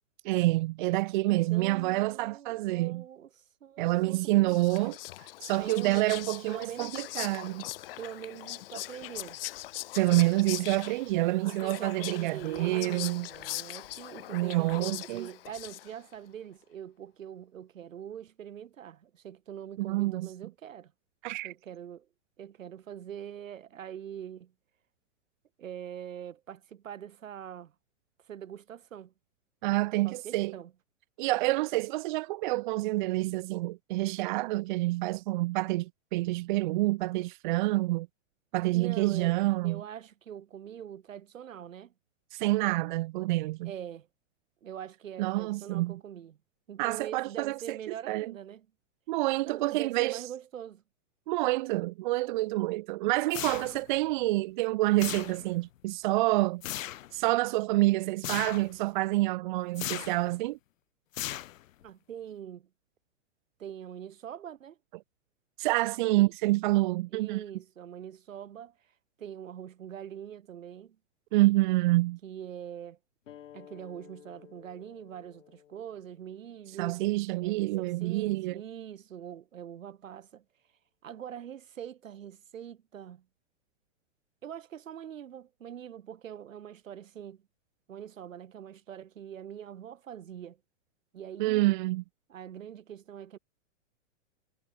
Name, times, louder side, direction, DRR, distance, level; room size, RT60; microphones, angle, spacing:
voice 1, 0.2-3.0 3.8-5.0 5.4-7.6 9.9-13.3 14.3-15.3 19.8-20.3 21.2-21.5 29.6-30.5 31.2-38.1 38.5-39.8 42.3-43.7 45.2-45.9 46.8-47.8 48.1-48.3 49.1-50.2 51.3-56.6 57.1-60.6 65.6-67.4 71.3-72.2 76.8-78.6 91.4-92.0, right 19 dB, 40° right, 0.9 m, -27 dB
voice 2, 1.2-4.7 5.6-7.3 8.0-9.4 11.5-20.9 21.4-22.1 22.4-24.5 25.6-27.7 28.2-29.1 30.0-30.7 38.7-39.4 39.6-41.9 43.6-44.1 44.6-46.4 46.7-48.7 49.4-50.8 61.8-62.7 63.6-64.8 66.1-66.3 67.1-68.8 69.2-71.0 72.2-73.0 73.5-77.0 77.4-80.4 81.0-83.3 84.4-87.4 87.9-90.6 91.1-91.7 92.3-93.4, right 9 dB, 85° right, 5.8 m, -43 dB
Whispering, 4.2-16.1, left 16 dB, 50° left, 0.7 m, -41 dB
sound 1, 53.3-54.0 55.0-55.7 56.6-57.1 58.2-58.7 59.7-60.3 61.1-61.8, left 13 dB, 90° left, 0.8 m, -37 dB
sound 2, 73.3-78.4, left 10 dB, 75° left, 5.9 m, -55 dB
hypercardioid pair, 155°, 38 cm